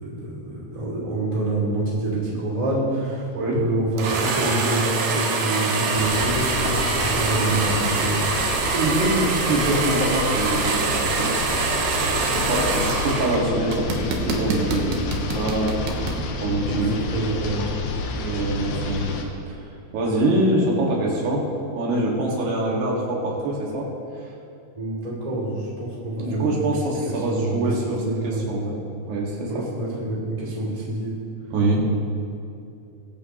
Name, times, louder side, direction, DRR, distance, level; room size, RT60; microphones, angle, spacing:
voice 1, 0.0-3.3 3.5-8.2 16.6-17.6 24.8-26.6 27.3-28.4 29.5-31.1, right 2 dB, 10° right, -6 dB, 1.9 m, -27 dB
sound 1, 4.0-13.4 13.7-16.2, right 4 dB, 65° right, 2.5 m, -24 dB
sound 2, 5.9-19.2, left 3 dB, 85° left, 3.1 m, -30 dB
voice 2, 8.7-11.3 12.0-15.0 15.3-15.8 16.4-16.9 18.1-19.2 19.5-23.9 24.2-24.3 26.2-28.8 29.1-29.6 31.5-31.9, right 1 dB, 85° right, -3 dB, 4.0 m, -24 dB
22.0 x 8.2 x 3.0 m, 2.6 s
omnidirectional pair, 4.6 m